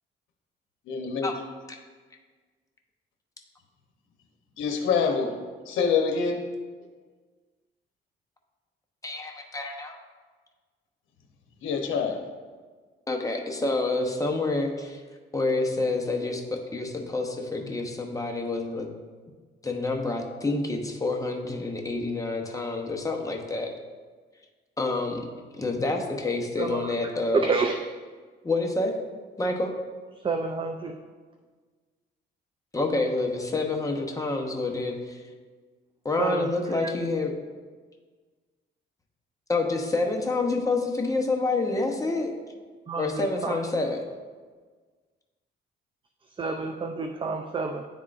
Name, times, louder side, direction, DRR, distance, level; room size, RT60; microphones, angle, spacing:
voice 1, 0.9-1.3 4.6-5.3 5.7-6.4 11.6-12.2, left 5 dB, 85° left, 3 dB, 0.8 m, -25 dB
voice 2, 9.0-10.0 13.1-15.0 15.3-18.9 19.6-23.7 24.8-25.2 25.5-27.5 28.4-28.9 29.4-29.7 32.7-35.2 36.0-37.3 39.5-42.3 43.0-44.0, left 2 dB, 15° left, 1 dB, 0.8 m, -28 dB
voice 3, 26.6-26.9 27.3-27.8 30.2-31.0 36.2-36.5 36.8-36.9 42.9-43.6 46.4-47.9, right 4 dB, 25° right, 5 dB, 0.4 m, -29 dB
10.5 x 3.6 x 2.5 m, 1.4 s
cardioid pair, 90°, 20 cm